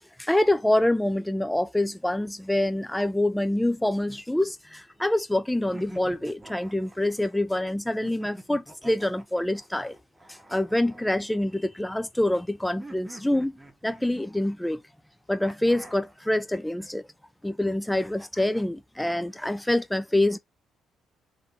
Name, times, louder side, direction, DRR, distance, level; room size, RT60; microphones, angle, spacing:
voice 1, 0.2-10.0 10.5-13.5 13.8-14.8 15.3-17.0 17.4-20.4, left 1 dB, 5° left, 0.5 m, -26 dB
sound 1, 4.1-5.1 5.7-7.4 8.0-11.8 12.8-14.6 15.4-16.2, right 1 dB, 10° right, 1.3 m, -47 dB
3.8 x 3.6 x 3.8 m
cardioid pair, 105°, 0 cm